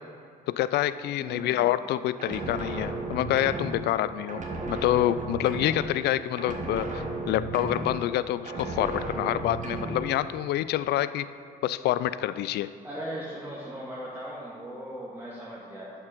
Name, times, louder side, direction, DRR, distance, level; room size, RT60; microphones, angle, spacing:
voice 1, 0.5-4.4 4.7-11.3 11.6-12.7, left 13 dB, 55° left, 15 dB, 0.4 m, -27 dB
voice 2, 1.2-1.7 12.8-15.9, right 1 dB, 10° right, -6 dB, 2.0 m, -38 dB
sound 1, 2.2-4.0 4.3-6.1 6.4-8.2 8.5-10.1, right 2 dB, 35° right, 1.8 m, -34 dB
10.0 x 7.1 x 5.2 m, 2.5 s
figure-of-eight pair, 45°, 21 cm